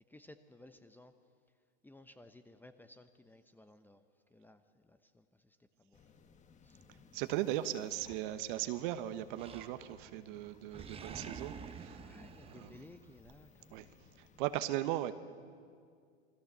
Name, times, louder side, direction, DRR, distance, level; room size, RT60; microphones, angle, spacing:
voice 1, 0.1-1.1 1.8-4.0 4.3-6.0 6.6-6.8 12.0-13.9, left 1 dB, 5° left, 9 dB, 0.9 m, -58 dB
sound 1, 5.9-14.6, left 5 dB, 20° left, 1.5 m, -63 dB
voice 2, 7.1-12.0 12.4-12.7 13.7-13.8 14.2-15.1, right 14 dB, 50° right, 11 dB, 1.2 m, -37 dB
Animal, 8.0-8.8 9.3-10.1 10.4-13.4, right 5 dB, 20° right, 1.3 m, -49 dB
27.5 x 19.5 x 6.8 m, 2.2 s
hypercardioid pair, 100°, 32 cm